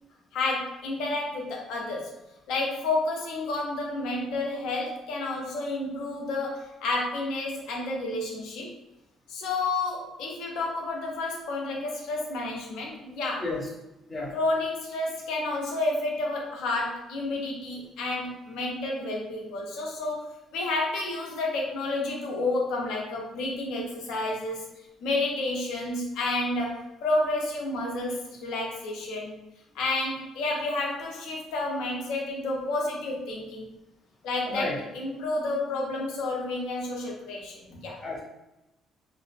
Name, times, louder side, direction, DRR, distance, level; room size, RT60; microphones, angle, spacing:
voice 1, 0.3-2.2 2.5-8.7 9.3-13.5 14.3-24.7 25.0-29.3 29.7-33.7 34.2-38.0, left 2 dB, 85° left, -1 dB, 0.6 m, -30 dB
voice 2, 34.5-34.8 38.0-38.2, left 2 dB, 25° left, -4 dB, 0.8 m, -32 dB
2.6 x 2.0 x 2.4 m, 0.93 s
cardioid pair, 110°, 0 cm